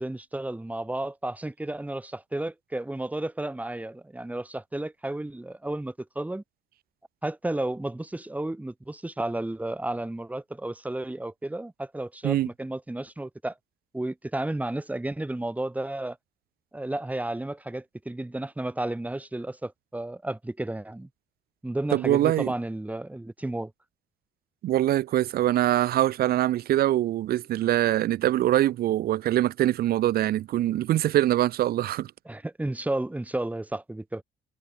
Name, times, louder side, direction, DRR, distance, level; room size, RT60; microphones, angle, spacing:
voice 1, 0.0-6.4 7.2-13.5 13.9-16.2 16.7-21.1 21.6-23.7 32.3-34.2, right 1 dB, 10° right, 4.3 m, -32 dB
voice 2, 21.9-22.5 24.6-32.1, right 13 dB, 65° right, 1.3 m, -23 dB
cardioid pair, 110°, 17 cm